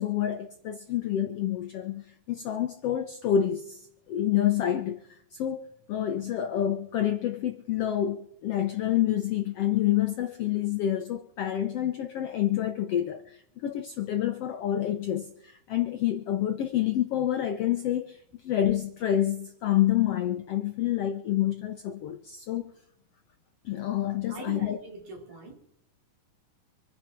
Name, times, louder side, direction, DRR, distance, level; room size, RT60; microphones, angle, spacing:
voice 1, 0.0-22.7 23.6-24.8, left 11 dB, 75° left, 1.4 m, -28 dB
voice 2, 24.3-25.5, right 3 dB, 75° right, 5.8 m, -42 dB
26.0 x 9.7 x 4.5 m
omnidirectional pair, 3.8 m